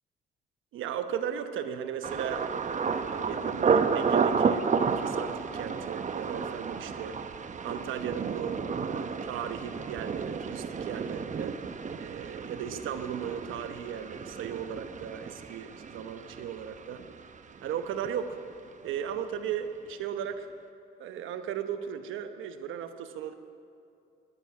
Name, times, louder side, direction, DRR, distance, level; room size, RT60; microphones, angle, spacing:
voice 1, 0.7-2.5 3.0-7.2 7.6-11.6 12.0-17.0 17.6-18.4 18.8-20.5 21.0-23.3, right 8 dB, 85° right, 9 dB, 1.0 m, -36 dB
Thunder, 2.0-17.8 18.0-18.7 19.1-19.4, right 5 dB, 40° right, 0.8 m, -31 dB
18.5 x 12.0 x 6.0 m, 2.5 s
cardioid pair, 90°, 20 cm